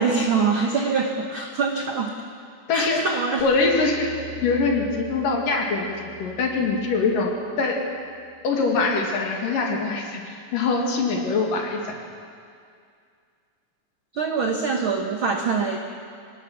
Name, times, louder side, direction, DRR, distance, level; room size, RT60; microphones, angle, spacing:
voice 1, 0.0-2.1 2.7-3.5 14.1-15.8, right 4 dB, 85° right, 3 dB, 1.1 m, -24 dB
voice 2, 2.7-3.0 3.4-4.1 4.4-7.3 7.6-7.8 8.4-11.8, left 4 dB, 65° left, 1 dB, 3.8 m, -23 dB
sound 1, 3.4-8.6, right 3 dB, 30° right, 6.8 m, -44 dB
26.0 x 18.5 x 6.1 m, 2.2 s
omnidirectional pair, 4.1 m